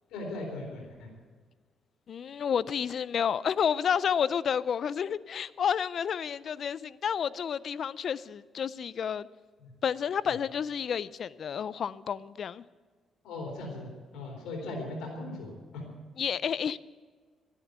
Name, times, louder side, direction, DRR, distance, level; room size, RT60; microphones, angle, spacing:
voice 1, 0.1-1.1 9.6-9.7 13.2-15.8, left 2 dB, 85° left, 3.9 m, -39 dB
voice 2, 2.1-9.3 9.8-12.6 16.2-16.8, left 7 dB, 55° left, 0.5 m, -30 dB
12.5 x 11.0 x 8.0 m
cardioid pair, 90°, 0 cm